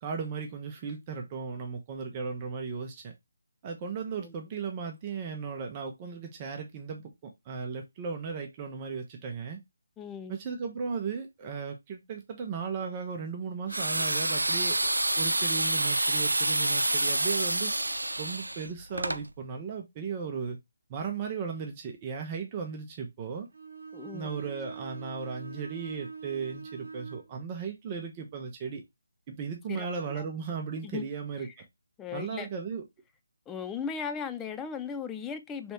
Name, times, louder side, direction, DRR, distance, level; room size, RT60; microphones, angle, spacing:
voice 1, 0.0-3.1 3.6-7.1 7.4-9.6 10.3-14.8 15.2-17.7 18.2-20.6 20.9-23.5 24.1-28.8 29.3-31.5 32.1-32.8, right 6 dB, 25° right, 0.7 m, -36 dB
voice 2, 10.0-10.4 23.9-24.3 29.7-30.2 30.9-31.1 31.4-31.5 32.0-32.5 33.5-35.7, left 6 dB, 10° left, 0.3 m, -37 dB
sound 1, 13.7-19.2, right 2 dB, 85° right, 0.3 m, -28 dB
Bowed string instrument, 23.5-27.3, right 5 dB, 65° right, 0.9 m, -43 dB
3.3 x 3.0 x 2.8 m
figure-of-eight pair, 150°, 0 cm